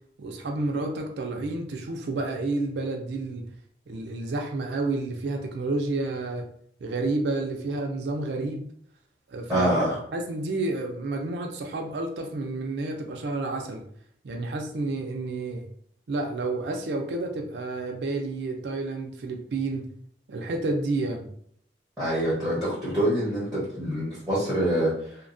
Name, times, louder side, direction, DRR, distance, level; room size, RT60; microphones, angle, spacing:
voice 1, 0.2-3.4 3.9-6.4 6.8-8.6 9.3-9.7 10.1-13.8 14.2-15.7 16.1-19.8 20.3-21.3, right 2 dB, 75° right, 2 dB, 0.4 m, -30 dB
voice 2, 9.5-10.0 22.0-25.2, equal, ahead, -10 dB, 1.0 m, -25 dB
2.7 x 2.2 x 2.5 m, 0.64 s
head